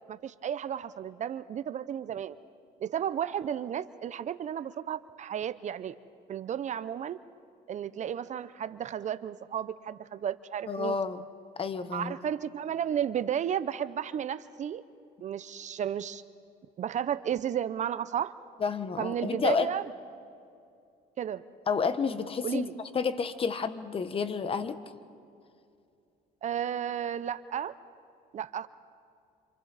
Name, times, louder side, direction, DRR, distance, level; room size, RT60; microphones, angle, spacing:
voice 1, 0.1-2.4 2.8-6.0 6.3-7.2 7.7-11.0 11.9-14.8 15.2-16.2 16.8-18.3 19.0-19.9 21.2-21.4 22.4-22.7 26.4-27.7 28.3-28.7, right 9 dB, 45° right, 14 dB, 0.6 m, -33 dB
voice 2, 10.7-11.2 11.6-12.1 18.6-19.7 21.7-24.8, left 5 dB, 35° left, 11 dB, 1.1 m, -30 dB
29.0 x 27.0 x 4.1 m, 2.5 s
cardioid pair, 110°, 17 cm